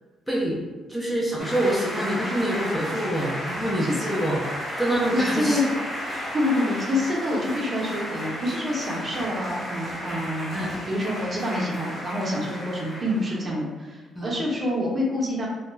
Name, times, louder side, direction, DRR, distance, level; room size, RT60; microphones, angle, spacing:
voice 1, 0.3-4.4 4.8-5.6 10.5-10.7 14.2-14.4, right 1 dB, 5° left, -4 dB, 0.5 m, -26 dB
sound 1, 1.4-13.5, equal, 25° left, 1.3 m, -33 dB
voice 2, 5.1-5.6 6.3-15.5, left 1 dB, 35° right, -3 dB, 0.7 m, -27 dB
2.2 x 2.0 x 3.1 m, 1.3 s
cardioid pair, 90°, 0 cm